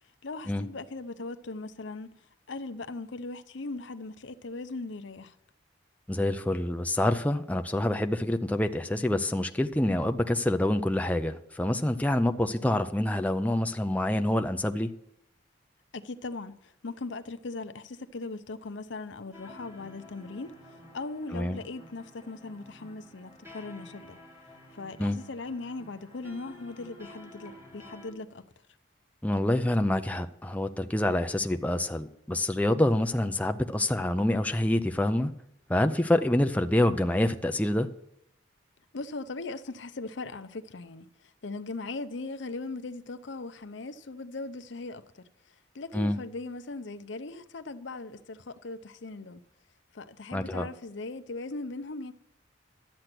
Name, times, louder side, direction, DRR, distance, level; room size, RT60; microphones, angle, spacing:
voice 1, 0.2-2.1 2.5-5.3 15.9-24.2 24.7-28.4 38.9-45.2 45.7-49.4 49.9-52.1, left 3 dB, 70° left, 0.7 m, -39 dB
voice 2, 6.1-14.9 21.3-21.6 25.0-25.2 29.2-35.3 35.7-37.9 45.9-46.2 50.3-50.7, left 1 dB, 10° left, 0.5 m, -26 dB
sound 1, 19.3-28.1, left 1 dB, 15° right, 2.2 m, -51 dB
12.0 x 7.9 x 6.0 m
head